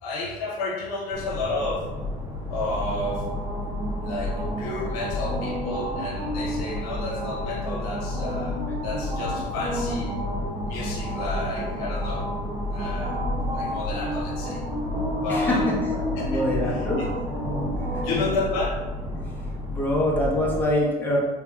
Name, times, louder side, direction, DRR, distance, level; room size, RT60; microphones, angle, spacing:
voice 1, 0.0-1.9 2.5-3.3 4.0-10.2 10.7-12.3 12.7-13.2 13.5-14.6 15.2-16.9 18.0-18.8, left 2 dB, 75° left, -3 dB, 0.8 m, -31 dB
sound 1, 1.1-20.6, left 1 dB, 20° right, 0.9 m, -29 dB
voice 2, 15.3-15.7 16.2-17.1 17.7-18.2 19.7-21.2, left 1 dB, 10° left, -4 dB, 1.1 m, -25 dB
3.4 x 3.3 x 2.4 m, 1.3 s
hypercardioid pair, 75°, 19 cm